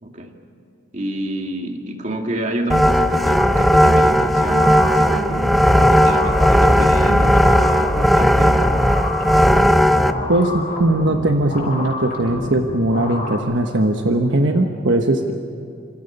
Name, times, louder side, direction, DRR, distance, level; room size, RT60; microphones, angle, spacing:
voice 1, 0.0-0.4 0.9-8.9, right 1 dB, 35° right, 3 dB, 2.2 m, -29 dB
sound 1, 2.7-10.1, equal, ahead, 0.6 m, -15 dB
sound 2, 3.4-13.4, left 1 dB, 45° left, 6.5 m, -29 dB
voice 2, 10.3-15.3, right 1 dB, 60° right, 4 dB, 1.3 m, -19 dB
28.5 x 27.0 x 5.5 m, 2.6 s
head